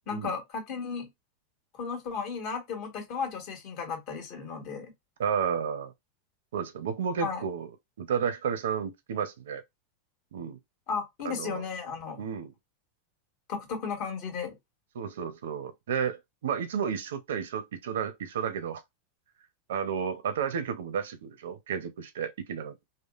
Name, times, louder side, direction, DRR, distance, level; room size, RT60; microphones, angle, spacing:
voice 1, 0.1-1.1 1.7-4.9 7.2-7.4 10.9-12.2 13.5-14.6, left 5 dB, 50° left, 1.3 m, -34 dB
voice 2, 5.2-5.9 6.5-7.7 8.0-9.6 10.3-10.6 11.2-11.6 12.2-12.5 14.9-18.8 19.7-22.8, right 7 dB, 90° right, 0.6 m, -32 dB
3.5 x 2.0 x 2.4 m
supercardioid pair, 140°, 0 cm